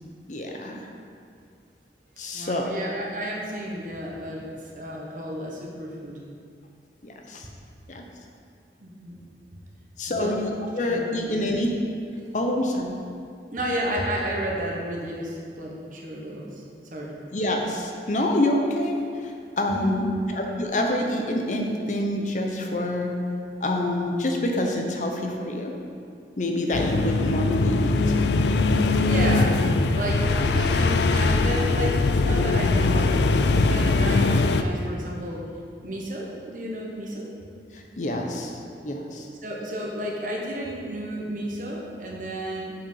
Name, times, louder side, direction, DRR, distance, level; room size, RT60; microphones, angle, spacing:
voice 1, 0.3-0.8 2.2-2.7 7.0-7.5 7.9-8.0 10.0-11.7 12.3-13.0 17.3-20.0 20.3-23.1 23.6-25.7 26.4-28.0 37.7-38.6 38.8-39.3, left 1 dB, 45° left, 2 dB, 0.7 m, -27 dB
voice 2, 2.3-6.2 8.8-9.2 10.1-10.4 10.9-11.3 13.5-16.6 16.9-17.2 19.7-20.2 28.8-29.6 29.9-35.4 35.8-37.3 39.4-42.7, right 1 dB, 45° right, -2 dB, 1.2 m, -32 dB
sound 1, 26.7-34.6, left 3 dB, 70° left, 0.4 m, -21 dB
7.4 x 5.1 x 5.6 m, 2.4 s
head